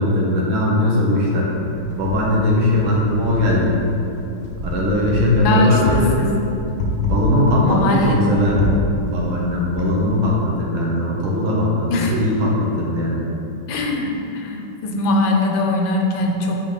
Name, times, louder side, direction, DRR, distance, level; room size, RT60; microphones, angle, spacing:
voice 1, 0.0-1.5 2.0-3.7 4.6-6.1 7.0-8.7 9.0-13.2, left 1 dB, 85° right, -4 dB, 2.1 m, -19 dB
Wind, 1.5-10.4, left 2 dB, 55° left, 1.4 m, -27 dB
voice 2, 5.4-6.3 7.6-8.3 11.9-12.2 13.7-16.6, left 2 dB, 75° left, 1 dB, 1.6 m, -21 dB
9.0 x 4.6 x 4.1 m, 2.9 s
omnidirectional pair, 2.2 m